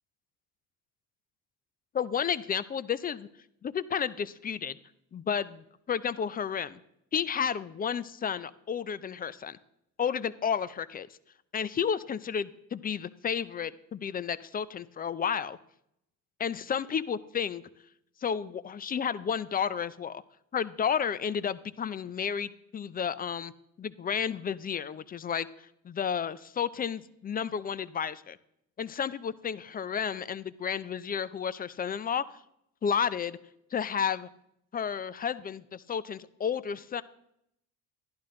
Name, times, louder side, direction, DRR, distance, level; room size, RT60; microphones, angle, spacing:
voice 1, 1.9-3.3 3.6-4.8 5.1-6.8 7.1-9.6 10.0-11.1 11.5-15.6 16.4-17.6 18.2-20.2 20.5-23.5 23.8-25.5 25.8-28.4 28.8-32.2 32.8-33.4 33.7-34.3 34.7-37.0, left 7 dB, 20° left, 16 dB, 0.4 m, -32 dB
11.5 x 11.5 x 3.8 m, 0.76 s
supercardioid pair, 85°, 41 cm